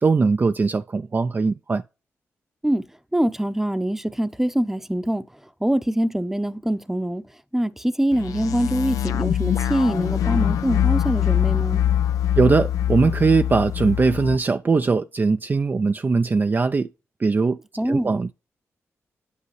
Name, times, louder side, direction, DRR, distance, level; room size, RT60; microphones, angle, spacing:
voice 1, 0.0-1.8 12.4-16.9 17.2-17.6 17.9-18.3, right 4 dB, 35° right, 0.4 m, -20 dB
voice 2, 3.1-7.3 7.5-11.8 17.8-18.1, right 1 dB, 5° right, 0.7 m, -24 dB
sound 1, 8.1-14.4, left 10 dB, 85° left, 0.5 m, -23 dB
8.3 x 5.0 x 3.1 m
supercardioid pair, 50°, 6 cm